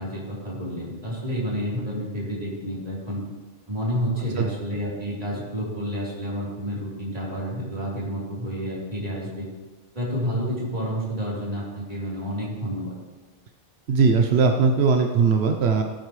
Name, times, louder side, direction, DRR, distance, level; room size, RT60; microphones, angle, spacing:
voice 1, 0.0-3.2 3.7-9.5 9.9-13.0, equal, 40° right, -7 dB, 3.9 m, -29 dB
voice 2, 13.9-15.8, right 5 dB, 85° right, 4 dB, 1.1 m, -19 dB
17.5 x 8.9 x 3.2 m, 1.3 s
omnidirectional pair, 1.0 m